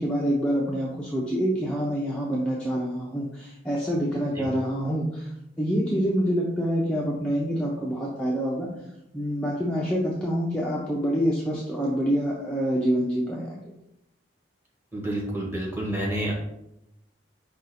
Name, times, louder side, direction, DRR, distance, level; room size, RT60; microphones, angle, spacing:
voice 1, 0.0-5.3 5.6-8.7 9.1-13.6, equal, 5° left, -4 dB, 0.5 m, -26 dB
voice 2, 14.9-16.3, right 1 dB, 10° right, -4 dB, 1.2 m, -29 dB
5.0 x 2.4 x 4.1 m, 0.84 s
head